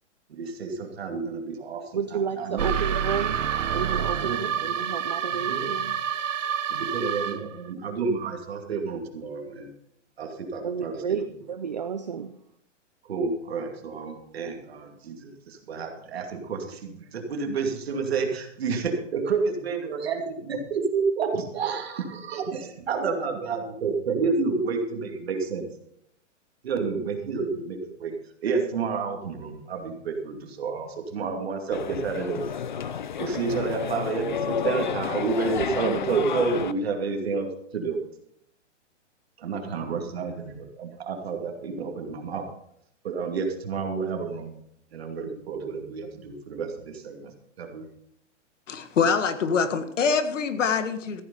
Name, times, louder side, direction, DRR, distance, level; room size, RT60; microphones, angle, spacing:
voice 1, 0.3-2.7 4.2-4.4 4.7-4.8 5.3-5.8 6.8-9.7 10.2-11.2 13.1-25.7 26.6-28.1 28.4-32.4 33.2-38.0 39.4-42.5 43.0-44.6 44.9-47.9, right 5 dB, 55° right, 2.6 m, -30 dB
voice 2, 1.9-6.9 10.6-12.3, right 6 dB, 35° right, 0.5 m, -32 dB
sound 1, 2.6-7.6, right 8 dB, 80° right, 1.1 m, -28 dB
sound 2, 31.7-36.7, left 8 dB, 40° left, 0.5 m, -31 dB
voice 3, 48.7-51.2, left 5 dB, 80° left, 1.8 m, -24 dB
14.5 x 9.4 x 5.4 m
hypercardioid pair, 180°, 37 cm